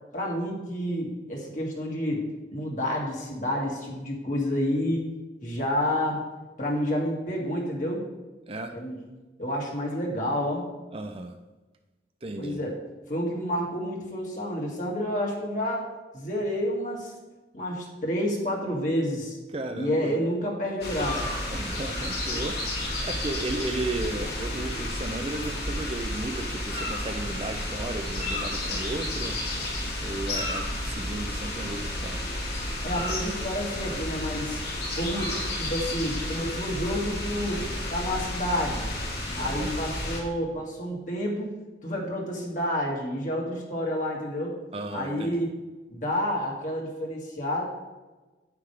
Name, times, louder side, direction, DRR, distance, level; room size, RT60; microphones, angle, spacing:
voice 1, 0.1-2.2 2.5-5.1 5.4-6.2 6.6-8.0 8.7-9.0 9.4-10.7 12.4-12.8 13.1-15.9 16.1-17.1 17.5-19.4 19.7-21.3 32.8-34.6 34.9-38.9 39.4-41.5 41.8-44.6 44.9-45.5 45.9-47.7, equal, 45° left, -2 dB, 2.2 m, -29 dB
voice 2, 10.9-11.4 12.2-12.6 19.5-20.2 21.5-29.4 30.0-32.2 39.4-39.7 44.7-45.4, right 2 dB, 35° right, 6 dB, 0.6 m, -34 dB
sound 1, 20.8-40.2, left 1 dB, 65° left, 2.8 m, -31 dB
9.4 x 9.3 x 3.4 m, 1.2 s
head